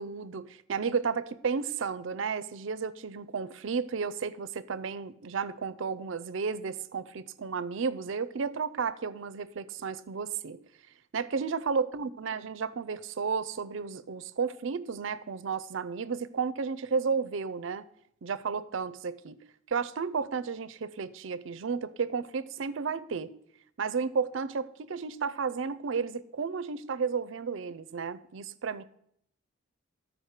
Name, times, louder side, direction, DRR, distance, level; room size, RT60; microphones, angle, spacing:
voice 1, 0.0-10.6 11.1-17.8 18.2-19.4 19.7-23.3 23.8-28.8, right 5 dB, 70° right, 0.5 m, -33 dB
13.5 x 4.9 x 6.5 m
head